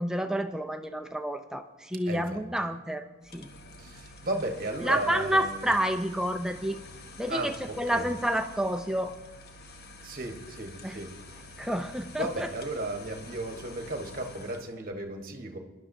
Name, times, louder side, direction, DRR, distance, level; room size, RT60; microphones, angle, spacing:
voice 1, 0.0-3.0 3.3-3.5 4.8-6.8 7.2-9.1 10.8-11.0 11.6-12.5, right 1 dB, 5° right, 5 dB, 0.4 m, -29 dB
voice 2, 2.1-2.4 3.8-5.7 7.3-8.1 10.0-11.1 12.1-15.6, right 2 dB, 40° right, 4 dB, 1.1 m, -35 dB
sound 1, 3.2-14.8, left 2 dB, 45° left, 0.9 m, -48 dB
21.5 x 11.0 x 2.6 m, 1.2 s
head